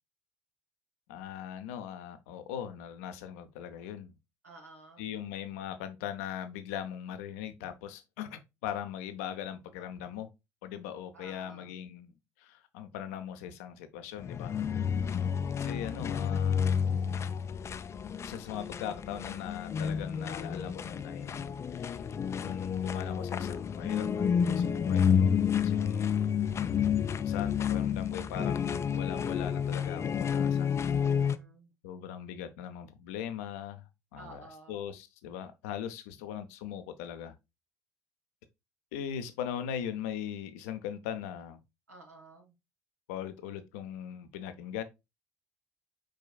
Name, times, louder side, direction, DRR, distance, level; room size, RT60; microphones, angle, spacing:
voice 1, 1.1-4.2 5.0-10.3 10.6-14.6 15.5-16.9 18.2-22.0 22.4-25.2 25.6-26.5 27.2-30.7 31.8-37.3 38.9-41.6 43.1-44.8, left 9 dB, 70° left, 0.7 m, -40 dB
voice 2, 4.4-5.1 11.1-11.7 15.0-15.6 25.7-27.1 31.0-31.7 34.1-34.8 41.9-42.5, right 2 dB, 90° right, 1.5 m, -54 dB
sound 1, 14.2-31.4, left 7 dB, 35° left, 0.4 m, -30 dB
4.8 x 4.5 x 2.3 m
figure-of-eight pair, 55°, 8 cm